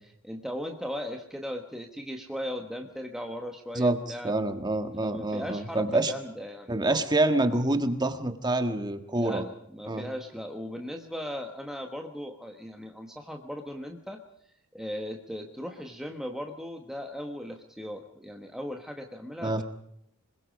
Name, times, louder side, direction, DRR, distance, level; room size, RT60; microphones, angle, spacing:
voice 1, 0.2-4.3 5.0-7.0 9.2-14.2 14.7-19.6, equal, ahead, 3 dB, 1.2 m, -38 dB
voice 2, 4.2-6.1 6.7-9.4 9.9-10.0 19.4-19.6, right 2 dB, 20° right, 8 dB, 1.6 m, -26 dB
26.0 x 21.5 x 5.2 m, 0.74 s
head